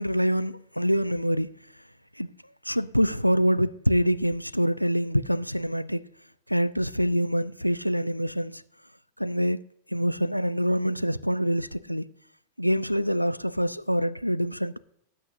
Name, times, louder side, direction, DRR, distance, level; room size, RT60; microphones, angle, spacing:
voice 1, 0.0-1.5 2.2-2.3 2.7-6.0 6.5-8.6 9.2-9.6 9.9-12.1 12.6-14.8, equal, 90° left, 0.4 m, -25 dB
18.5 x 8.6 x 2.6 m
figure-of-eight pair, 90°, 0 cm